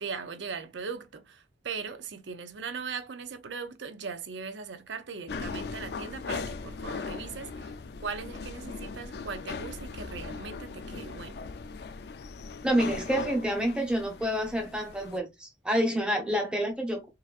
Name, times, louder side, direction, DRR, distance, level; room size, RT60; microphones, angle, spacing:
voice 1, 0.0-7.7 8.0-11.4, right 5 dB, 85° right, 0.6 m, -39 dB
sound 1, 5.3-15.2, left 4 dB, 65° left, 0.4 m, -39 dB
voice 2, 12.6-17.1, equal, 5° right, 0.9 m, -28 dB
3.9 x 2.6 x 2.4 m
head